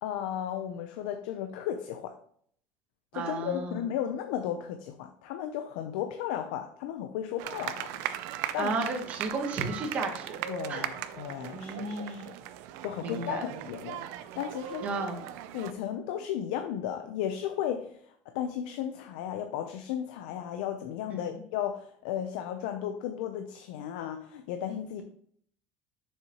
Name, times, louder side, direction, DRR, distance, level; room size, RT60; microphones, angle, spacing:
voice 1, 0.0-2.2 3.1-8.1 8.5-8.8 10.5-12.4 12.8-14.0 14.4-14.9 15.5-25.0, left 10 dB, 85° left, 6 dB, 0.6 m, -35 dB
voice 2, 3.1-3.8 8.6-10.4 10.7-10.8 11.5-12.3 13.0-13.4 14.8-15.2 21.2-21.4, right 3 dB, 30° right, 4 dB, 1.2 m, -33 dB
sound 1, 7.4-15.7, right 12 dB, 60° right, 0.5 m, -38 dB
7.7 x 6.7 x 3.0 m, 0.63 s
cardioid pair, 180°, 5 cm